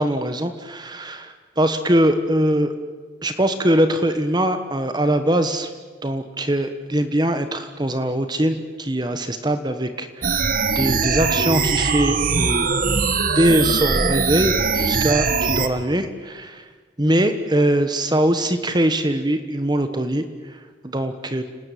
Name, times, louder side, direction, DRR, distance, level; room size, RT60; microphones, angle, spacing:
voice 1, 0.0-2.7 3.2-5.7 6.0-10.5 10.7-12.7 13.3-16.6 17.0-20.2 20.8-21.4, right 1 dB, 20° right, 9 dB, 1.4 m, -22 dB
sound 1, 10.2-15.7, right 4 dB, 45° right, 1.4 m, -21 dB
30.0 x 19.5 x 9.4 m, 1.4 s
head